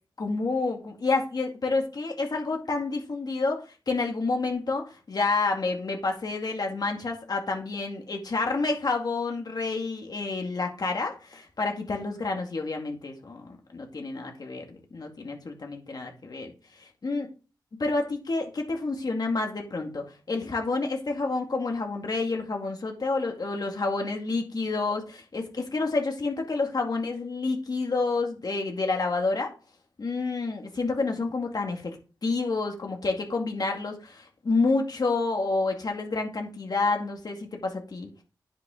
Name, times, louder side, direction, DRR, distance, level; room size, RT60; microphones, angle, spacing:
voice 1, 0.2-14.6 14.9-16.5 17.0-17.3 17.8-29.5 30.0-32.0 32.2-38.1, left 3 dB, 55° left, 2 dB, 2.1 m, -29 dB
9.8 x 5.9 x 3.8 m, 0.34 s
wide cardioid pair, 80°, 8 cm